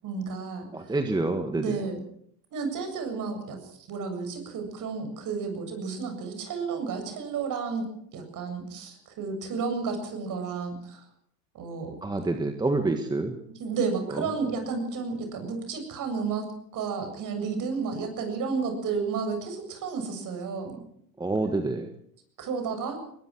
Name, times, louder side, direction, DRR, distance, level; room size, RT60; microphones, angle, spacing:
voice 1, 0.0-1.0 1.6-2.0 2.5-7.9 8.1-11.0 11.5-12.0 13.6-20.8 22.4-23.0, right 5 dB, 40° right, 6 dB, 7.8 m, -32 dB
voice 2, 0.7-1.9 12.0-13.4 14.1-14.3 21.2-21.9, right 2 dB, 10° right, 6 dB, 1.7 m, -28 dB
22.0 x 20.0 x 6.3 m, 0.68 s
supercardioid pair, 115°, 48 cm